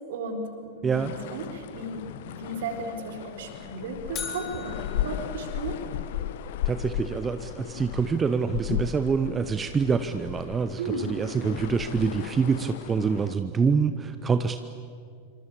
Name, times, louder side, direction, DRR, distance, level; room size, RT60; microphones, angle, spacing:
voice 1, 0.1-5.8 10.8-11.0, right 3 dB, 55° right, 5 dB, 4.4 m, -35 dB
sound 1, 0.9-13.4, left 12 dB, 55° left, 1.1 m, -36 dB
sound 2, 4.1-6.3, left 6 dB, 30° left, 4.2 m, -40 dB
voice 2, 6.7-14.6, right 5 dB, 20° right, 10 dB, 1.0 m, -26 dB
27.0 x 25.0 x 8.8 m, 2.3 s
figure-of-eight pair, 90°, 0 cm